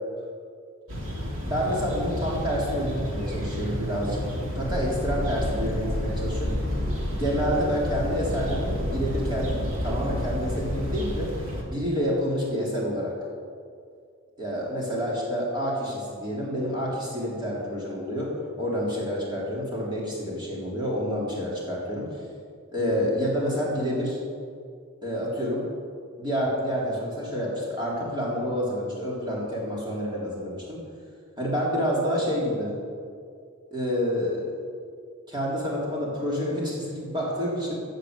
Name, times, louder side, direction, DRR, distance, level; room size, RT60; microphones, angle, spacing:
sound 1, 0.9-11.6, equal, 90° right, 2.8 m, -32 dB
voice 1, 1.4-4.2 4.5-6.6 7.1-9.6 9.8-11.3 11.7-13.1 14.4-22.1 22.7-24.2 25.0-25.7 26.2-30.8 31.4-32.8 33.7-34.4 35.3-37.8, equal, 20° right, -5 dB, 3.7 m, -28 dB
sound 2, 4.5-11.1, left 1 dB, 45° right, 1.9 m, -31 dB
14.5 x 7.9 x 8.2 m, 2.3 s
head